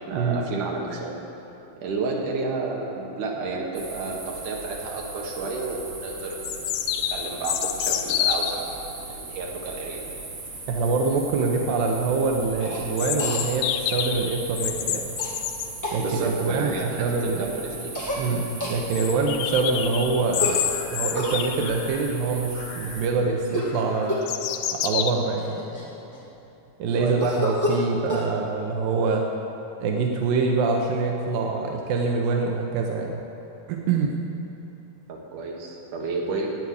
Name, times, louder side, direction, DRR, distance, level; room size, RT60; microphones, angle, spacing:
voice 1, 0.1-1.2 1.8-6.7 7.1-10.1 16.0-18.0 27.0-27.2 35.1-36.5, right 3 dB, 70° right, -1 dB, 3.0 m, -31 dB
sound 1, 3.7-23.1, right 3 dB, 55° right, 0.8 m, -39 dB
sound 2, 5.4-5.5 6.4-8.6 13.0-15.7 17.4-17.5 17.7-17.8 18.2-18.3 18.9-22.1 22.6-23.1 23.6-25.1, left 10 dB, 80° left, 2.3 m, -28 dB
voice 2, 10.7-15.2 15.9-17.4 18.2-20.6 20.9-24.2 24.8-25.6 26.8-29.2 29.8-33.2 33.7-34.2, right 4 dB, 90° right, 2 dB, 2.6 m, -25 dB
Cough, 12.6-12.8 13.2-13.4 15.2-15.3 15.8-16.0 17.9-18.2 18.6-18.8 20.4-21.4 23.4-23.8 24.1-24.4 25.0-25.1 25.4-26.4 27.2-28.3, left 1 dB, 10° left, 0.9 m, -29 dB
11.0 x 9.4 x 8.5 m, 3.0 s
omnidirectional pair, 3.9 m